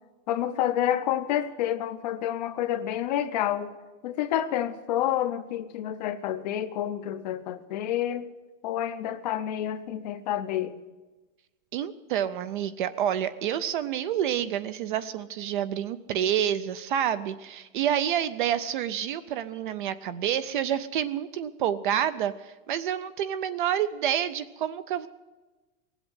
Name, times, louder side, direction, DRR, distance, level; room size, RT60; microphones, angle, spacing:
voice 1, 0.3-3.7 4.0-8.3 8.6-10.7, left 11 dB, 35° left, 11 dB, 0.5 m, -29 dB
voice 2, 11.7-25.1, right 10 dB, 40° right, 14 dB, 0.4 m, -28 dB
18.5 x 8.0 x 9.5 m, 1.2 s
supercardioid pair, 180°, 40 cm